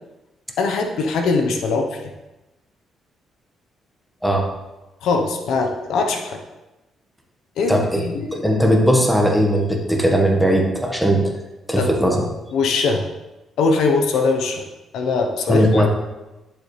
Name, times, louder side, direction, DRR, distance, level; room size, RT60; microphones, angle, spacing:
voice 1, 0.6-2.0 5.0-6.4 7.6-8.5 11.8-11.9 12.5-13.0 13.6-14.6 14.9-15.9, left 4 dB, 80° left, 3 dB, 1.1 m, -21 dB
voice 2, 7.7-8.1 8.3-11.3 11.7-12.2 15.5-15.9, equal, ahead, 1 dB, 1.6 m, -18 dB
11.5 x 7.0 x 3.4 m, 1.0 s
cardioid pair, 90°, 0 cm